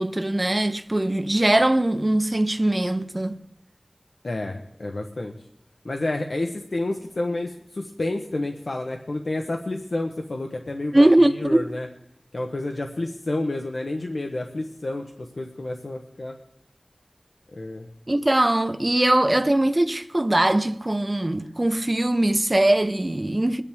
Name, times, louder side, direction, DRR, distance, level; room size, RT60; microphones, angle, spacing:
voice 1, 0.0-3.4 10.9-11.7 18.1-23.6, right 1 dB, 35° right, 0.9 m, -21 dB
voice 2, 4.2-5.3 5.8-11.9 12.3-16.4 17.6-17.9, left 2 dB, 80° left, 1.1 m, -30 dB
22.5 x 10.0 x 3.6 m
wide cardioid pair, 45°, 0 cm